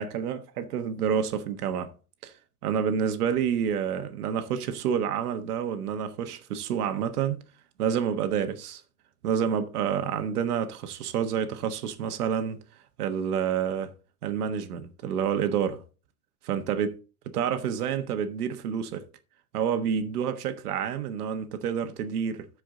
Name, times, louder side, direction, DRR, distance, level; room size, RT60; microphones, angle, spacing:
voice 1, 0.0-1.9 2.2-2.3 2.6-7.4 7.8-8.8 9.2-12.6 13.0-13.9 14.2-15.8 16.4-17.0 17.2-19.1 19.5-22.5, right 8 dB, 85° right, 1.4 m, -28 dB
13.0 x 4.9 x 3.8 m
supercardioid pair, 155°, 44 cm